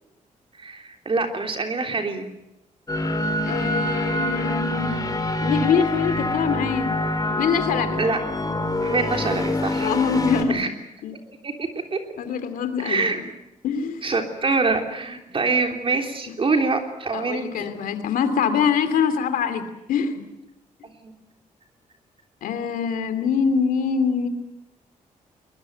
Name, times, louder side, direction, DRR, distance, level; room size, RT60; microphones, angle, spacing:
voice 1, 0.6-2.3 8.0-8.2 8.8-9.9 10.5-10.7 11.4-12.0 12.8-13.2 14.0-17.7 20.8-21.1, right 3 dB, 40° right, 4 dB, 3.4 m, -25 dB
sound 1, 2.9-10.4, left 1 dB, 25° left, 3.2 m, -25 dB
voice 2, 3.5-5.0 5.4-6.9 7.4-8.0 9.8-10.7 11.0-11.2 12.2-13.2 13.6-14.0 17.1-20.2 22.4-24.3, left 6 dB, 90° left, 10 dB, 2.7 m, -24 dB
21.5 x 21.5 x 9.2 m, 0.90 s
cardioid pair, 80°, 14 cm